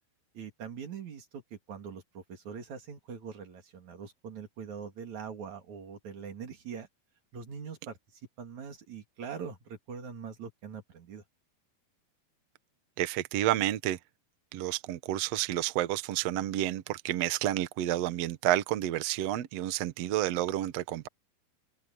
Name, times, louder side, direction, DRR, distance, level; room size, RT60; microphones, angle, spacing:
voice 1, 0.3-6.9 7.3-11.2, right 6 dB, 55° right, 3.4 m, -43 dB
voice 2, 13.0-14.0 14.5-21.1, right 13 dB, 70° right, 1.6 m, -30 dB
open air
omnidirectional pair, 4.3 m